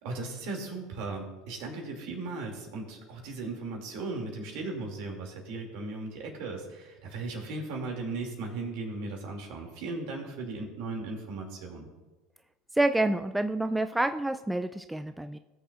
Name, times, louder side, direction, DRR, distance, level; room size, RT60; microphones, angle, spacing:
voice 1, 0.0-11.9, right 3 dB, 65° right, 1 dB, 2.5 m, -37 dB
voice 2, 12.7-15.4, right 2 dB, 5° right, 9 dB, 0.4 m, -28 dB
19.0 x 6.6 x 2.5 m, 1.2 s
hypercardioid pair, 85°, 0 cm